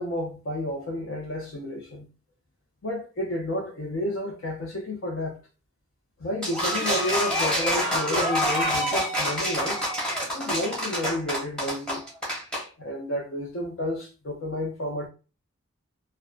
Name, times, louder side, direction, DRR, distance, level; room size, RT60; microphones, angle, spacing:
voice 1, 0.0-2.1 2.8-5.4 6.2-9.8 10.3-12.0 12.8-15.1, left 1 dB, 70° left, 0.6 m, -31 dB
sound 1, 6.4-12.6, equal, 5° left, 0.8 m, -26 dB
2.5 x 2.1 x 2.4 m
head